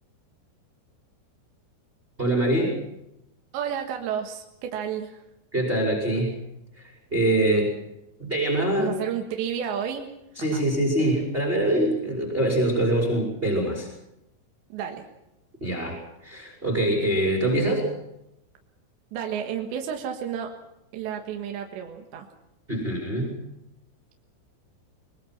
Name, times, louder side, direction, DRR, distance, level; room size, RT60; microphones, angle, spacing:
voice 1, 2.2-2.8 5.5-6.4 6.8-7.7 8.2-9.0 10.4-13.9 15.6-17.9 22.7-23.3, right 1 dB, 10° right, 1 dB, 5.2 m, -24 dB
voice 2, 3.5-5.2 8.8-10.1 10.4-10.6 14.7-15.1 19.1-20.5 20.9-22.3, right 8 dB, 65° right, 3 dB, 3.5 m, -31 dB
24.0 x 22.0 x 6.0 m, 0.89 s
omnidirectional pair, 5.8 m